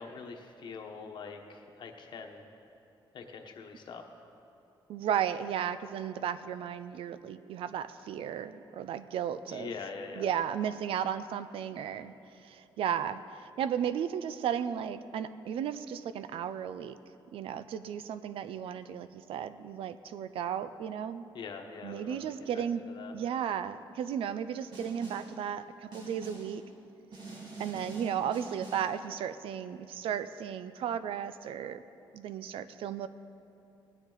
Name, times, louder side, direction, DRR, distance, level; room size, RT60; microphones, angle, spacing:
voice 1, 0.0-2.4 3.1-4.0 9.4-10.3 21.3-22.2 22.5-23.1, left 5 dB, 55° left, 4 dB, 1.1 m, -43 dB
voice 2, 4.9-9.7 10.1-17.0 17.3-21.3 21.8-22.8 23.1-26.6 27.6-31.8 32.1-33.1, right 9 dB, 85° right, 13 dB, 0.5 m, -34 dB
Snare drum, 24.7-25.4 25.9-26.6 27.1-29.0, right 2 dB, 55° right, 2.3 m, -44 dB
18.0 x 9.9 x 3.9 m, 2.7 s
wide cardioid pair, 155°, 9 cm